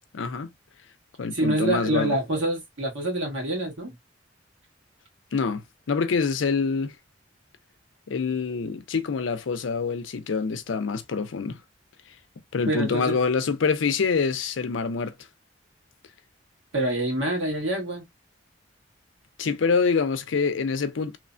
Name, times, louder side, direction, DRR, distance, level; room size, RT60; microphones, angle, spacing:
voice 1, 0.1-0.5 1.2-2.2 5.3-5.6 5.9-6.9 8.1-11.6 12.5-15.1 19.4-21.2, left 5 dB, 85° left, 0.5 m, -25 dB
voice 2, 1.3-4.0 12.7-13.2 16.7-18.0, right 1 dB, 90° right, 1.5 m, -26 dB
3.0 x 2.1 x 2.5 m
head